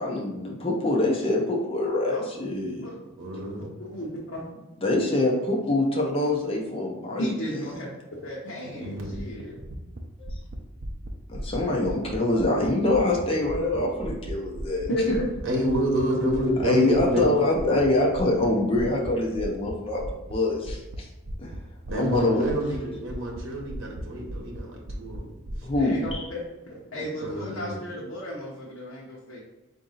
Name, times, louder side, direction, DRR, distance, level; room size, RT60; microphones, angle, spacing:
voice 1, 0.0-2.9 4.8-7.6 11.3-14.9 16.6-21.1 21.4-21.5 21.9-22.4 25.6-26.3, left 2 dB, 25° left, -1 dB, 0.5 m, -25 dB
voice 2, 3.2-3.7 8.8-9.1 15.1-15.2 15.4-17.2 21.9-25.3 25.6-25.7 26.9-27.8, right 1 dB, 65° right, -1 dB, 0.9 m, -28 dB
voice 3, 3.8-4.4 7.2-9.6 14.9-15.2 25.8-26.4 26.9-29.4, equal, 75° left, -5 dB, 0.8 m, -33 dB
sound 1, 9.1-13.2 13.5-16.6 16.9-17.3 17.5-17.9 18.1-18.5 18.7-19.1 19.4-19.7 20.0-20.3 20.7-21.0 21.3-21.6 21.8-22.2 22.4-22.8 23.1-24.0 24.3-24.6 24.9-25.2 25.5-26.1, right 1 dB, 45° right, 0.5 m, -36 dB
3.9 x 2.6 x 3.8 m, 1.0 s
head